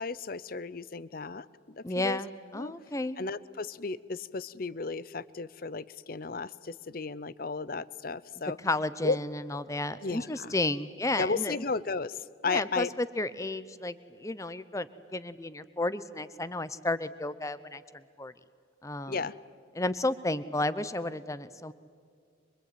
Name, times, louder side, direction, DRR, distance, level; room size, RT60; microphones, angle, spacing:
voice 1, 0.0-2.2 2.5-2.7 3.2-8.6 9.0-9.2 10.0-10.5 11.2-12.9 19.1-19.3, left 4 dB, 50° left, 18 dB, 0.7 m, -34 dB
voice 2, 1.8-3.2 8.6-11.6 12.5-18.3 18.8-19.2 19.8-21.7, left 2 dB, 15° left, 14 dB, 0.8 m, -32 dB
24.5 x 23.0 x 9.4 m, 2.1 s
head